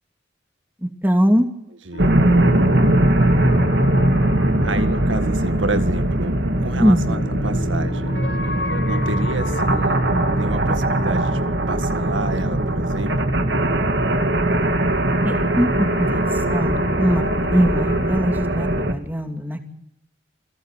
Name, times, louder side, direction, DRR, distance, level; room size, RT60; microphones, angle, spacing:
voice 1, 0.8-1.5 6.8-7.1 15.2-16.2 16.5-17.2 17.5-19.7, equal, 10° right, 5 dB, 2.7 m, -21 dB
voice 2, 1.8-2.2 4.6-8.1 8.9-13.3, right 2 dB, 85° right, 10 dB, 1.8 m, -29 dB
sound 1, 1.9-12.8 14.9-18.2, left 2 dB, 65° left, 3.1 m, -35 dB
sound 2, 2.0-18.9, right 1 dB, 60° right, 2.5 m, -20 dB
29.0 x 17.5 x 7.6 m, 0.82 s
head